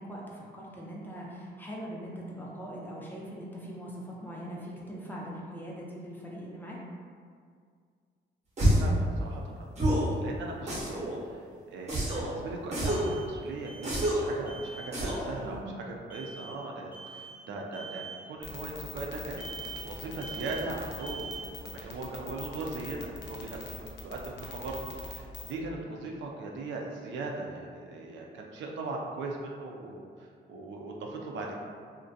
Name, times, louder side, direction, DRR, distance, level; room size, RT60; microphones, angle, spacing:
voice 1, 0.0-6.8 15.4-15.6, equal, 10° left, -5 dB, 0.5 m, -41 dB
sound 1, 8.6-9.0 9.8-10.1 10.7-11.2 11.9-12.3 12.7-13.1 13.8-14.3 14.9-15.3, equal, 35° right, 0.6 m, -27 dB
voice 2, 8.8-31.6, right 3 dB, 80° right, -1 dB, 0.4 m, -39 dB
sound 2, 9.6-9.7 12.8-13.4 13.6-14.2 14.5-15.0 16.1-16.6 16.9-17.4 17.7-18.2 19.4-19.9 20.2-20.7 21.0-21.6, right 5 dB, 5° right, 0.9 m, -44 dB
sound 3, 18.4-25.6, left 3 dB, 70° left, 0.5 m, -43 dB
2.4 x 2.1 x 2.6 m, 2.1 s
cardioid pair, 105°, 19 cm